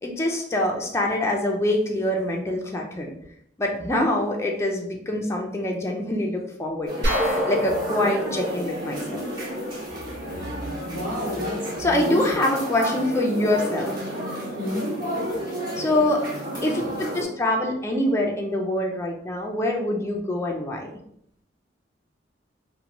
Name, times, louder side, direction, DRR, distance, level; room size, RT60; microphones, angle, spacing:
voice 1, 0.0-3.1 3.6-9.2 11.8-14.0 15.8-16.2 16.6-20.9, left 1 dB, 15° left, 0 dB, 0.4 m, -25 dB
sound 1, 6.9-17.2, equal, 25° right, 1.0 m, -31 dB
sound 2, 7.0-9.8, equal, 65° right, 0.9 m, -27 dB
voice 2, 10.8-12.2 14.5-15.0, left 1 dB, 90° right, -2 dB, 0.8 m, -30 dB
2.7 x 2.1 x 2.9 m, 0.70 s
head